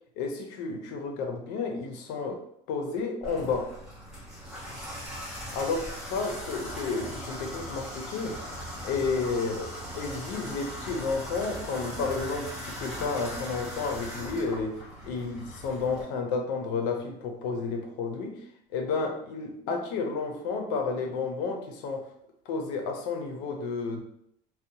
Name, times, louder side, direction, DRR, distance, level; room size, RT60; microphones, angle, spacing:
voice 1, 0.2-2.4 2.7-3.7 5.5-8.3 8.8-14.7 15.0-18.5 18.7-22.1 22.5-24.0, left 4 dB, 90° left, 3 dB, 0.5 m, -31 dB
Water tap faucet / Bathtub (filling or washing), 3.2-16.0, equal, 5° right, 0.9 m, -39 dB
2.7 x 2.1 x 2.7 m, 0.74 s
cardioid pair, 170°, 16 cm